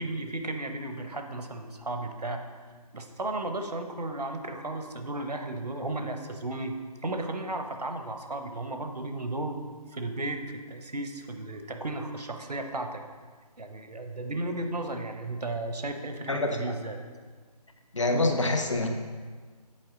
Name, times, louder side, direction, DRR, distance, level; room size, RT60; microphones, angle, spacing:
voice 1, 0.0-2.4 2.9-6.8 7.0-9.6 9.9-13.0 13.6-17.0, right 2 dB, 75° right, 6 dB, 0.8 m, -34 dB
voice 2, 17.9-18.9, left 2 dB, 50° left, 5 dB, 0.6 m, -25 dB
7.6 x 4.4 x 3.7 m, 1.5 s
figure-of-eight pair, 155°, 21 cm